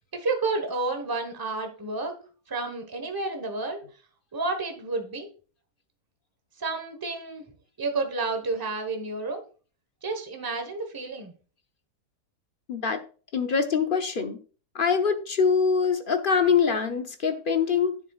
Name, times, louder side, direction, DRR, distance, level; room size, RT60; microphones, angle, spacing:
voice 1, 0.1-3.8 4.3-5.3 6.6-7.4 7.8-9.4 10.0-11.3, right 3 dB, 15° right, 1.1 m, -30 dB
voice 2, 12.7-13.0 13.3-14.4 14.7-18.0, left 6 dB, 45° left, 0.7 m, -24 dB
10.0 x 7.4 x 2.4 m
omnidirectional pair, 1.7 m